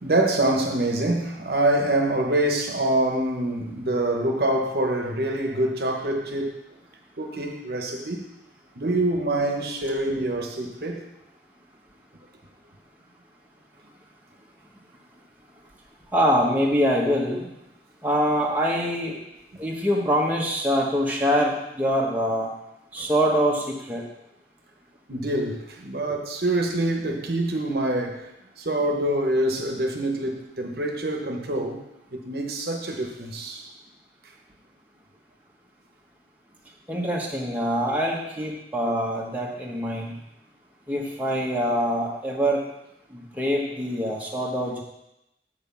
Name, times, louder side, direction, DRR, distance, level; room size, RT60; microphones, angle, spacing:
voice 1, 0.0-6.5 7.2-8.3 8.7-11.1 23.0-23.1 25.1-28.3 28.6-31.8 32.1-33.7, right 1 dB, 60° right, 1.1 m, -25 dB
voice 2, 16.1-17.5 18.0-19.1 19.6-22.5 22.9-24.0 36.9-40.1 40.9-42.6 43.1-44.8, equal, 10° right, 1.1 m, -24 dB
7.5 x 4.9 x 7.1 m
head